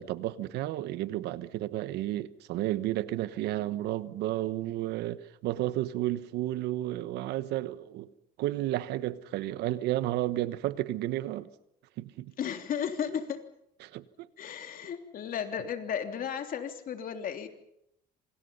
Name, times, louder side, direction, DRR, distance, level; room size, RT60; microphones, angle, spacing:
voice 1, 0.0-8.1 8.4-11.5 12.0-12.3 13.8-14.3, right 15 dB, 85° right, 1.3 m, -32 dB
voice 2, 12.4-13.4 14.4-17.5, left 8 dB, 55° left, 3.3 m, -34 dB
27.0 x 26.0 x 5.6 m
cardioid pair, 110°, 17 cm